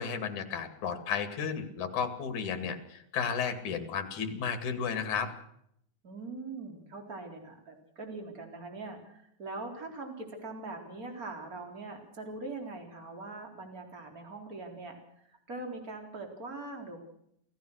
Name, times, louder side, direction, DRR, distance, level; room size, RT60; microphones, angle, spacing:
voice 1, 0.0-5.3, left 6 dB, 65° left, 9 dB, 3.7 m, -33 dB
voice 2, 6.0-15.0 15.2-17.0, right 3 dB, 25° right, 3 dB, 4.1 m, -42 dB
28.0 x 16.5 x 6.5 m, 0.74 s
omnidirectional pair, 3.8 m